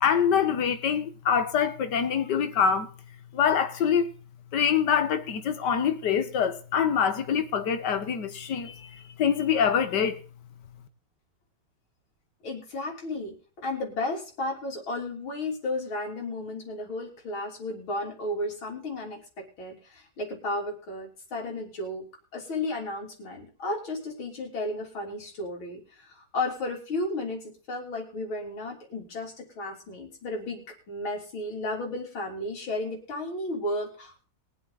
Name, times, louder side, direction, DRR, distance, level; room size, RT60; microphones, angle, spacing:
voice 1, 0.0-2.9 3.3-4.1 4.5-10.2, left 7 dB, 60° left, 1.7 m, -25 dB
voice 2, 12.4-22.1 22.3-34.3, left 2 dB, 85° left, 4.1 m, -33 dB
22.0 x 7.9 x 4.0 m
omnidirectional pair, 2.2 m